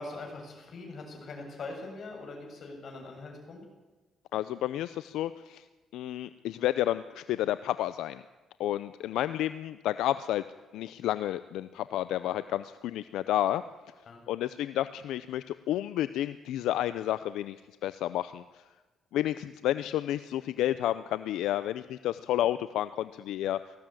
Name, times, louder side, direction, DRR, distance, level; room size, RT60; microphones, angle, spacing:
voice 1, 0.0-3.6 14.1-14.2, left 3 dB, 55° left, 2 dB, 7.1 m, -42 dB
voice 2, 4.3-5.6 5.9-8.2 8.6-10.4 10.7-13.6 14.3-17.6 17.8-18.6 19.1-23.6, left 13 dB, 85° left, 14 dB, 0.6 m, -31 dB
18.5 x 15.5 x 9.0 m, 1.2 s
cardioid pair, 90°, 0 cm